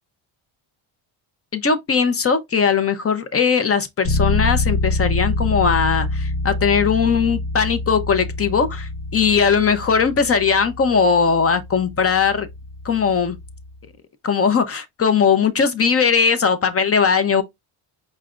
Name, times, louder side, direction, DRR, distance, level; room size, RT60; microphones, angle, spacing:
voice 1, 1.5-12.5 12.8-13.4 14.2-17.4, left 6 dB, 30° left, 0.6 m, -19 dB
Bass guitar, 4.0-13.8, left 2 dB, 55° left, 1.3 m, -26 dB
5.0 x 3.2 x 2.4 m
cardioid pair, 155°, 50 cm